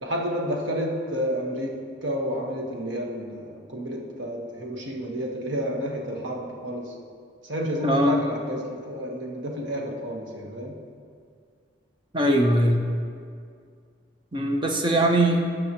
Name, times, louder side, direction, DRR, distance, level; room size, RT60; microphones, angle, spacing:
voice 1, 0.0-1.8 2.0-6.9 7.4-10.8, equal, 85° right, 0 dB, 1.3 m, -30 dB
voice 2, 7.8-8.2 12.1-12.9 14.3-15.4, right 1 dB, 25° right, 1 dB, 0.8 m, -21 dB
17.0 x 6.0 x 3.0 m, 2.2 s
head